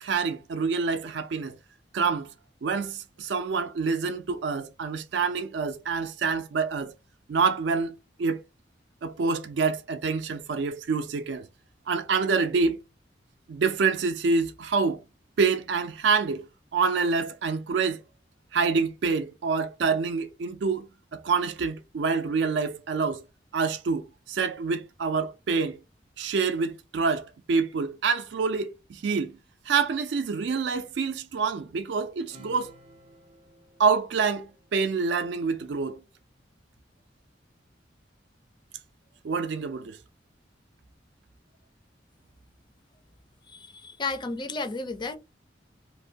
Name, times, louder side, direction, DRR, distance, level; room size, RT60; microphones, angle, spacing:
voice 1, 0.0-1.6 1.9-2.3 2.6-6.9 7.3-8.4 9.0-11.5 11.9-12.8 13.5-15.0 15.4-16.4 16.7-18.0 18.5-20.9 21.1-23.2 23.5-25.8 26.2-29.4 29.7-32.7 33.8-36.0 39.2-40.0, right 5 dB, 70° right, 0.4 m, -27 dB
Acoustic guitar / Strum, 32.3-35.2, equal, 30° right, 0.6 m, -54 dB
voice 2, 43.5-45.2, left 3 dB, 25° left, 0.4 m, -33 dB
2.6 x 2.1 x 2.6 m
head